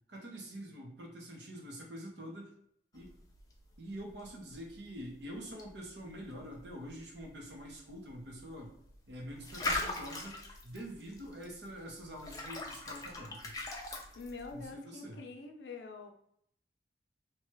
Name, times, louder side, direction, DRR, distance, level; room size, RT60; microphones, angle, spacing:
voice 1, 0.1-2.5 2.9-3.1 3.8-8.7 9.1-13.5 14.5-15.2, equal, 85° right, 0 dB, 0.9 m, -46 dB
sound 1, 2.9-14.7, left 2 dB, 20° left, 0.4 m, -43 dB
voice 2, 14.1-16.1, left 3 dB, 75° left, 4 dB, 0.5 m, -45 dB
2.8 x 2.3 x 3.1 m, 0.70 s
head